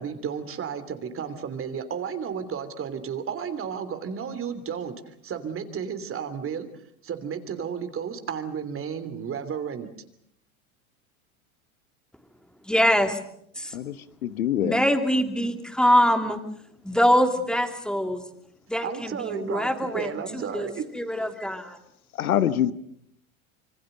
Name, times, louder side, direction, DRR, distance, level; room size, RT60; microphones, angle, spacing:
voice 1, 0.0-6.7 7.0-9.9 18.8-20.9, right 7 dB, 30° right, 11 dB, 3.1 m, -33 dB
voice 2, 12.7-13.2 13.6-13.7 14.6-16.4 16.8-18.2 18.7-20.7 20.9-21.8, equal, ahead, 6 dB, 2.9 m, -23 dB
voice 3, 14.2-14.8 22.2-22.7, left 10 dB, 80° left, 15 dB, 1.1 m, -24 dB
26.0 x 24.5 x 6.7 m, 0.71 s
hypercardioid pair, 90°, 42 cm